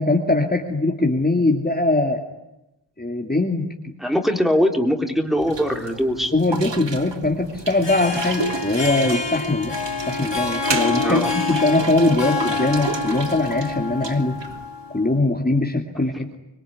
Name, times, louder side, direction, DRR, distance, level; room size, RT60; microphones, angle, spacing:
voice 1, 0.0-2.3 3.0-3.9 6.3-9.8 10.1-14.4 14.9-16.4, left 2 dB, 20° left, 1 dB, 2.6 m, -21 dB
voice 2, 4.0-6.3 11.0-11.3, equal, ahead, 3 dB, 3.5 m, -21 dB
sound 1, 5.4-14.6, right 4 dB, 75° right, 1.8 m, -32 dB
Harp, 7.6-15.0, left 4 dB, 70° left, 3.7 m, -27 dB
26.0 x 22.5 x 9.7 m, 0.92 s
wide cardioid pair, 75°, 44 cm